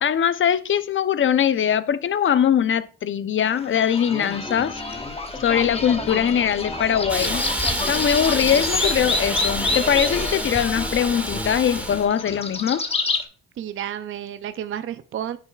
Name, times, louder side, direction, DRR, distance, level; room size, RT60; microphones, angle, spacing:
voice 1, 0.0-4.8 5.4-7.4 7.9-12.8, left 8 dB, 40° left, 0.6 m, -21 dB
sound 1, 3.5-13.2, left 3 dB, 20° left, 1.2 m, -28 dB
Hiss, 7.1-12.1, right 1 dB, 5° right, 1.2 m, -28 dB
voice 2, 13.6-15.4, right 10 dB, 45° right, 0.5 m, -31 dB
8.9 x 6.6 x 2.3 m
cardioid pair, 90°, 30 cm